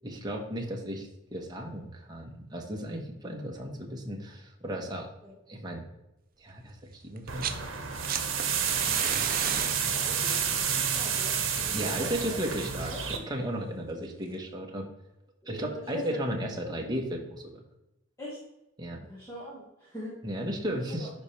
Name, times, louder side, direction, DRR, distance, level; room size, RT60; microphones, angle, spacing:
voice 1, 0.0-5.1 5.5-5.9 6.4-7.5 9.0-9.2 11.7-12.9 13.3-14.9 15.5-17.6 18.8-19.0 20.2-21.1, equal, 20° right, 0 dB, 1.3 m, -35 dB
sound 1, 7.2-7.6 7.9-12.8 14.0-14.1, right 8 dB, 45° right, 0.5 m, -37 dB
sound 2, 7.3-13.2, right 7 dB, 70° right, 1.2 m, -30 dB
voice 2, 8.7-9.0 9.4-12.4 12.8-13.0 15.4-16.4 18.2-18.4 19.1-20.1 20.6-21.1, equal, 15° left, -7 dB, 1.8 m, -41 dB
11.0 x 4.5 x 3.3 m, 0.90 s
head